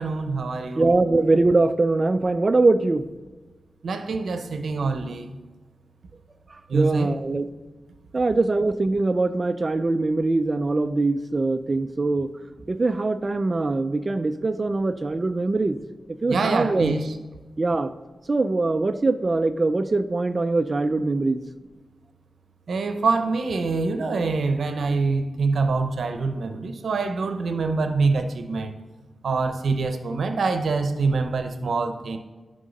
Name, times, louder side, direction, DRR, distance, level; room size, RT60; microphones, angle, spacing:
voice 1, 0.0-0.9 3.8-5.3 6.7-7.2 16.3-17.2 22.7-28.7 29.2-32.2, right 4 dB, 80° right, 7 dB, 0.7 m, -25 dB
voice 2, 0.8-3.0 6.7-7.5 8.1-12.3 12.7-15.8 16.2-17.0 17.6-17.9 18.3-21.4, right 3 dB, 35° right, 10 dB, 0.4 m, -22 dB
11.0 x 3.7 x 5.2 m, 1.3 s
wide cardioid pair, 85°, 0 cm